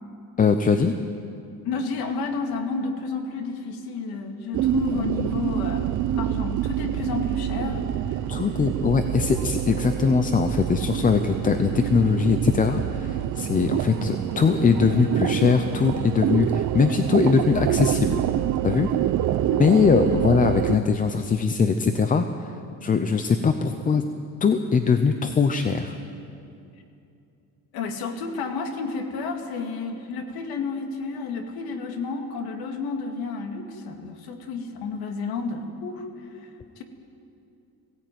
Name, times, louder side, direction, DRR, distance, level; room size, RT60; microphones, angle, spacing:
voice 1, 0.4-0.9 8.3-18.2 18.6-18.9 19.6-22.2 22.8-24.0 24.4-26.0, left 5 dB, 20° left, 8 dB, 0.6 m, -21 dB
voice 2, 1.6-8.2 11.4-11.5 19.5-19.6 27.7-36.5 36.8-36.9, left 4 dB, 75° left, 4 dB, 2.5 m, -31 dB
sound 1, 4.5-20.8, right 11 dB, 50° right, 0.7 m, -26 dB
20.5 x 16.5 x 9.3 m, 2.6 s
cardioid pair, 165°, 37 cm